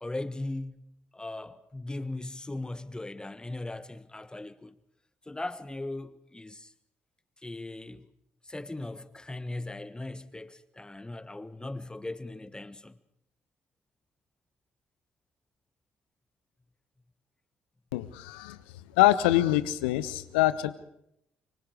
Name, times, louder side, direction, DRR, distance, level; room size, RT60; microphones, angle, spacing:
voice 1, 0.0-0.8 1.1-4.8 5.2-6.7 7.4-8.1 8.4-13.0, left 2 dB, 15° left, 1.4 m, -38 dB
voice 2, 17.9-18.6 19.0-20.7, left 15 dB, 75° left, 0.9 m, -24 dB
25.5 x 24.5 x 4.9 m
figure-of-eight pair, 45°, 6 cm